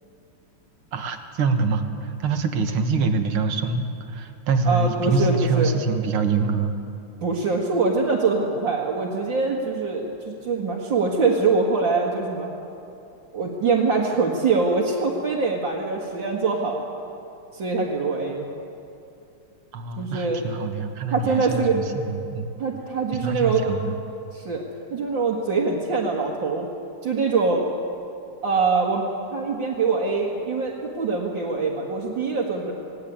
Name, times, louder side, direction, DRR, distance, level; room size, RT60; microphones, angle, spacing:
voice 1, 0.9-6.7 19.7-22.5 23.1-24.0, right 4 dB, 75° right, 6 dB, 2.2 m, -25 dB
voice 2, 4.7-5.7 7.2-12.5 13.3-16.9 17.5-18.5 20.0-20.4 21.1-21.8 22.6-23.7 24.3-24.6 24.9-26.7 27.0-27.6 28.4-32.7, right 4 dB, 60° right, -4 dB, 2.5 m, -23 dB
19.0 x 18.5 x 8.7 m, 2.6 s
omnidirectional pair, 2.4 m